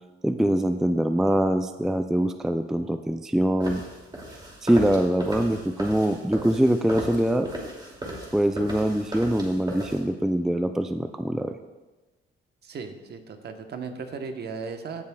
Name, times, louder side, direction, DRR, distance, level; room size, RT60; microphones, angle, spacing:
voice 1, 0.2-3.8 4.6-7.5 8.3-11.5, right 1 dB, ahead, 8 dB, 0.3 m, -23 dB
sound 1, 3.6-10.0, right 1 dB, 20° right, 2.4 m, -37 dB
voice 2, 12.6-15.0, right 5 dB, 55° right, 6 dB, 1.0 m, -36 dB
15.5 x 7.1 x 2.3 m, 1.2 s
cardioid pair, 90°, 20 cm